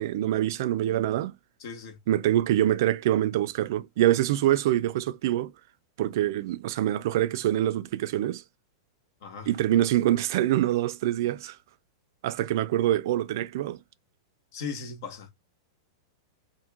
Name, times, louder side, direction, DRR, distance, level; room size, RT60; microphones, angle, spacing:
voice 1, 0.0-1.4 2.1-5.5 6.0-8.4 9.5-11.6 12.2-13.8, right 13 dB, 60° right, 0.3 m, -25 dB
voice 2, 1.6-2.0 9.2-9.5 14.5-15.3, left 5 dB, 60° left, 1.3 m, -37 dB
3.0 x 2.6 x 3.4 m
hypercardioid pair, 140°, 2 cm